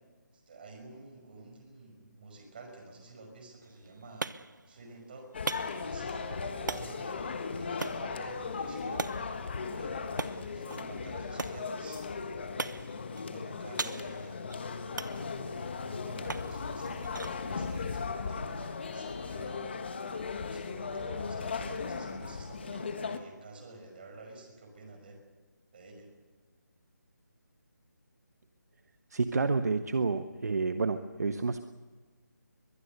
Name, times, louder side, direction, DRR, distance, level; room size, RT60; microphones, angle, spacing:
voice 1, 0.3-4.3 4.7-9.0 9.7-12.8 13.3-14.4 14.8-17.1 17.5-19.7 20.3-25.2 25.7-26.1, right 3 dB, 30° right, 4 dB, 5.4 m, -50 dB
sound 1, 3.6-19.2, right 3 dB, 80° right, 1.1 m, -43 dB
sound 2, 5.3-23.2, left 5 dB, 35° left, 1.4 m, -37 dB
voice 2, 29.1-31.6, right 4 dB, 60° right, 9 dB, 1.1 m, -29 dB
22.5 x 21.5 x 6.7 m, 1.4 s
figure-of-eight pair, 175°, 10 cm